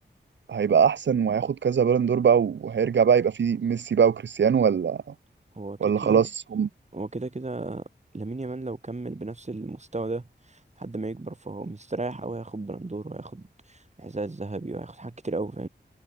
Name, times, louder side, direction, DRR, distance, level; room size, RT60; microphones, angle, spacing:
voice 1, 0.5-5.0 5.8-6.7, right 7 dB, 80° right, 0.6 m, -22 dB
voice 2, 5.5-6.3 6.9-7.9 8.1-15.7, right 2 dB, 40° right, 3.1 m, -34 dB
cardioid pair, 50°, 19 cm